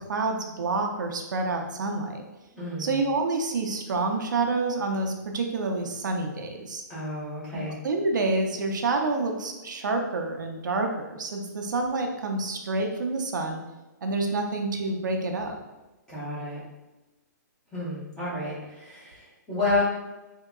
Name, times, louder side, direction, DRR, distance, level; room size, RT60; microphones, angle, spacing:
voice 1, 0.1-2.2 2.8-6.8 7.5-13.6 14.0-15.6, right 3 dB, 75° right, 3 dB, 0.6 m, -28 dB
voice 2, 2.5-3.0 6.9-7.7 16.1-16.6 17.7-19.8, left 2 dB, 5° left, -9 dB, 0.8 m, -30 dB
3.6 x 2.8 x 2.3 m, 1.1 s
hypercardioid pair, 170°, 10 cm